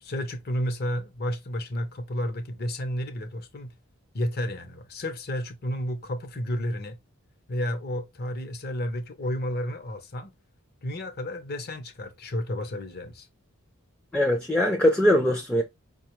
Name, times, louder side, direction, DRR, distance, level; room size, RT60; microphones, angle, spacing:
voice 1, 0.0-3.7 4.1-7.0 7.5-10.3 10.8-13.3, equal, 45° left, 0.7 m, -31 dB
voice 2, 14.1-15.6, left 1 dB, 5° left, 0.4 m, -21 dB
5.1 x 2.3 x 3.0 m
head